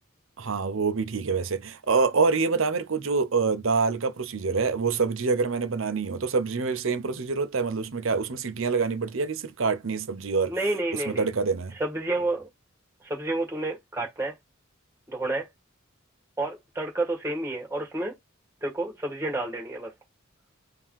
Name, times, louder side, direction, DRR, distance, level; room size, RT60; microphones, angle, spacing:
voice 1, 0.4-10.5 11.1-11.7, right 4 dB, 65° right, 0.7 m, -26 dB
voice 2, 10.5-11.3 11.7-12.5 13.0-14.4 15.1-15.5 16.4-18.1 18.6-19.9, right 2 dB, 10° right, 1.8 m, -30 dB
3.8 x 2.8 x 4.6 m
head